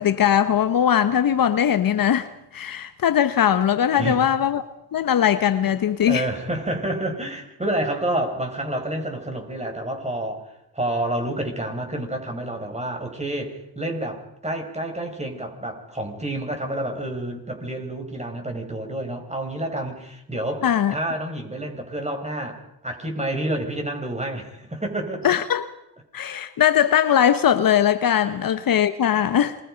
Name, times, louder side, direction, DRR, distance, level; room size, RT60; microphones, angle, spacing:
voice 1, 0.0-4.7 4.9-6.3 20.6-20.9 25.2-25.7 26.1-29.6, left 9 dB, 55° left, 1.2 m, -20 dB
voice 2, 3.9-4.2 6.0-25.3 28.2-28.4 29.2-29.3, right 1 dB, 15° right, 6.4 m, -29 dB
27.5 x 23.0 x 5.2 m
supercardioid pair, 65°, 42 cm